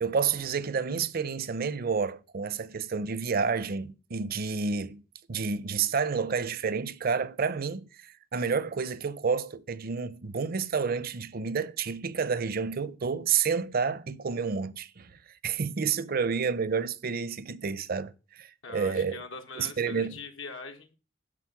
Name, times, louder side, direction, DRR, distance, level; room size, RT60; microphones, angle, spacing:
voice 1, 0.0-5.0 5.3-19.2 19.6-20.2, right 5 dB, 50° right, 0.6 m, -30 dB
voice 2, 18.6-21.0, left 4 dB, 85° left, 1.6 m, -42 dB
11.0 x 4.1 x 7.1 m
head